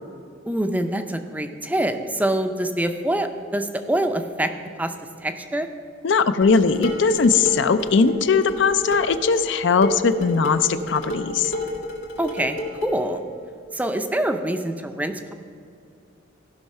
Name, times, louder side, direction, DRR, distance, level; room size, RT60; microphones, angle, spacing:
voice 1, 0.5-4.5 4.8-4.9 5.2-5.7 12.2-13.2 13.7-15.3, right 1 dB, 10° right, 7 dB, 0.5 m, -25 dB
voice 2, 6.0-11.5, left 5 dB, 65° left, 12 dB, 0.4 m, -19 dB
Dishes pots and pans, 6.4-13.0, left 1 dB, 90° left, 2.2 m, -30 dB
14.5 x 5.6 x 5.5 m, 2.3 s
head